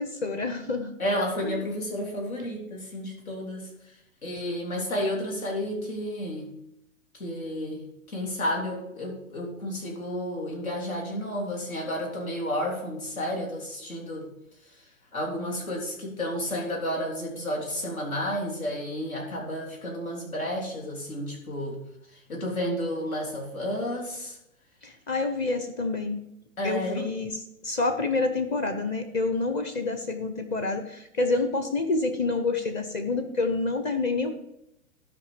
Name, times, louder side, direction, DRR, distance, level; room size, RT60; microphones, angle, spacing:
voice 1, 0.0-0.9 1.4-1.6 24.8-26.2 26.6-27.3 27.6-34.3, left 3 dB, 25° left, 7 dB, 0.9 m, -28 dB
voice 2, 1.0-3.7 4.2-6.5 7.1-14.3 15.1-21.8 22.3-24.4 26.6-27.1, equal, 80° left, -1 dB, 3.6 m, -31 dB
12.5 x 5.3 x 5.0 m, 0.81 s
hypercardioid pair, 125°, 41 cm